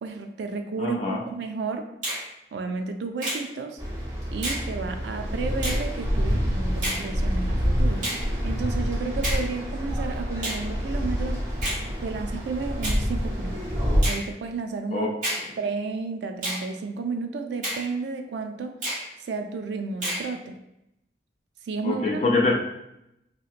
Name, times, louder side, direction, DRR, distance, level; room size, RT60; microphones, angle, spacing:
voice 1, 0.0-1.8 2.5-3.8 4.3-11.4 12.0-13.6 14.1-15.1 15.6-18.7 19.3-20.6 21.7-22.3, right 4 dB, 80° right, 6 dB, 0.3 m, -32 dB
voice 2, 0.8-1.2 14.9-15.2 21.8-22.5, left 3 dB, 40° left, 0 dB, 0.3 m, -24 dB
Finger snapping, 2.0-2.2 3.2-3.4 4.4-4.6 5.6-5.8 6.8-7.0 8.0-8.2 9.2-9.4 10.4-10.6 11.6-11.8 12.8-13.0 14.0-14.2 15.2-15.5 16.4-16.6 17.6-17.8 18.8-19.0 20.0-20.3, right 1 dB, 45° right, 1.3 m, -29 dB
sound 1, 3.8-14.0, equal, 20° right, 0.6 m, -27 dB
2.8 x 2.8 x 2.4 m, 0.84 s
head